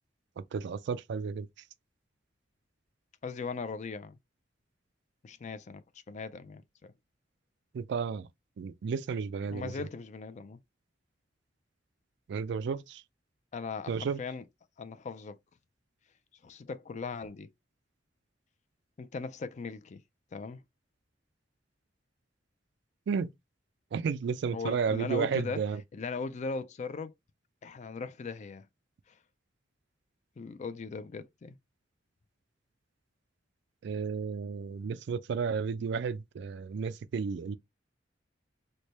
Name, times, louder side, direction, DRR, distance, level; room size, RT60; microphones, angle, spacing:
voice 1, 0.5-1.5 7.7-8.3 8.6-9.7 12.3-13.0 13.9-14.2 23.1-23.3 23.9-25.8 33.8-37.5, right 6 dB, 65° right, 0.3 m, -32 dB
voice 2, 3.2-4.2 5.2-5.8 6.1-6.9 9.5-10.6 13.5-14.5 14.8-15.4 16.4-17.5 19.0-20.0 20.3-20.6 24.5-25.6 25.9-27.1 27.6-28.7 29.1-29.2 30.4-31.6, left 4 dB, 40° left, 0.4 m, -39 dB
3.2 x 2.1 x 4.1 m
head